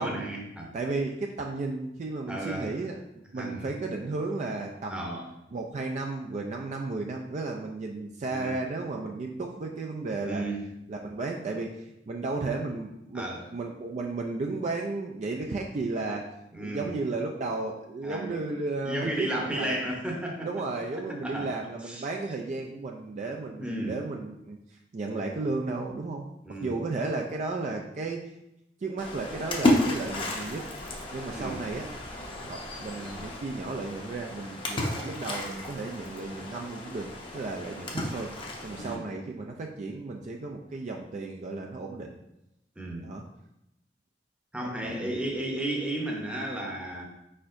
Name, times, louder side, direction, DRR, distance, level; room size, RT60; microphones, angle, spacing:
voice 1, 0.0-0.7 2.3-2.7 3.3-3.7 4.9-5.2 8.3-8.5 10.2-10.6 13.1-13.4 16.5-17.0 18.0-18.4 18.8-20.5 21.2-21.5 21.9-22.0 23.6-24.0 26.4-26.8 31.3-31.6 38.7-39.1 42.8-43.1 44.5-47.0, right 1 dB, 5° right, -1 dB, 0.8 m, -33 dB
voice 2, 0.7-3.0 3.3-5.1 5.5-10.5 10.9-16.3 16.6-19.9 20.5-28.3 28.8-30.6 31.1-31.9 32.4-38.3 38.6-42.2 43.0-43.2 44.6-45.2, right 3 dB, 40° right, 1 dB, 0.3 m, -34 dB
Splash splatter, 29.0-38.9, left 1 dB, 30° left, 0.7 m, -32 dB
4.5 x 4.3 x 2.5 m, 0.86 s
head